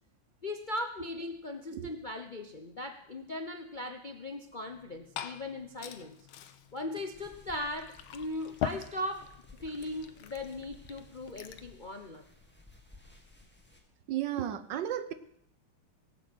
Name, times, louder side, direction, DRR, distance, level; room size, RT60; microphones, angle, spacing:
voice 1, 0.4-6.2 6.7-9.3 9.6-12.2, left 1 dB, 45° left, 6 dB, 0.6 m, -38 dB
Liquid, 4.7-11.7, left 10 dB, 90° left, 1.7 m, -43 dB
sound 1, 7.1-13.8, left 2 dB, 5° left, 1.9 m, -57 dB
voice 2, 14.1-15.1, right 11 dB, 70° right, 13 dB, 1.4 m, -33 dB
18.0 x 8.2 x 7.8 m, 0.72 s
omnidirectional pair, 2.2 m